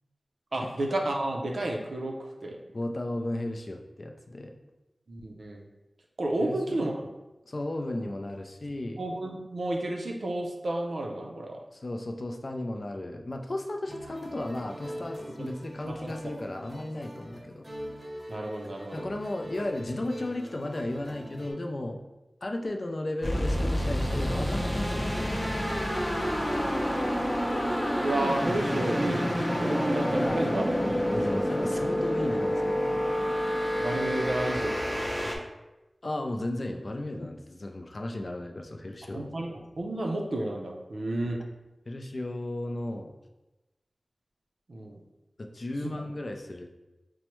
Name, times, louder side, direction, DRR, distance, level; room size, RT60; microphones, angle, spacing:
voice 1, 0.5-2.6 5.1-5.7 6.2-7.1 9.0-11.6 15.4-15.5 15.8-16.3 18.3-19.1 26.2-26.3 28.0-31.6 33.7-35.4 39.1-41.4 44.7-45.0 45.8-45.9, right 1 dB, 80° right, 1 dB, 0.5 m, -32 dB
voice 2, 2.7-4.5 6.4-6.9 7.5-9.0 11.7-17.7 18.9-22.0 22.4-25.5 30.1-30.6 31.1-33.0 36.0-39.3 41.9-43.1 45.4-46.7, left 1 dB, 55° left, 3 dB, 0.4 m, -35 dB
sound 1, 13.8-21.5, equal, 15° right, 0.8 m, -43 dB
sound 2, 23.2-35.4, equal, 5° left, 0.5 m, -28 dB
4.4 x 2.1 x 3.0 m, 1.0 s
wide cardioid pair, 65°, 0 cm